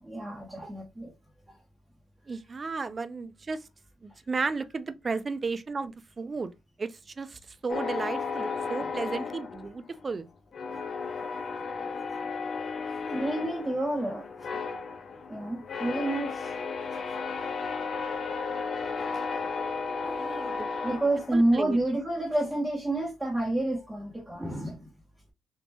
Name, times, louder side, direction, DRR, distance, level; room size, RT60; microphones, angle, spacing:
voice 1, 0.0-1.1 1.5-1.6 12.6-14.3 15.3-16.5 20.0-20.1 20.8-24.9, right 1 dB, 15° right, 1.0 m, -29 dB
voice 2, 2.3-3.6 4.0-6.5 6.8-10.3 20.2-21.0 21.3-21.8, right 4 dB, 35° right, 0.4 m, -34 dB
sound 1, 7.7-10.2 10.5-21.7, left 5 dB, 50° left, 0.5 m, -34 dB
3.6 x 2.5 x 2.9 m
cardioid pair, 90°, 0 cm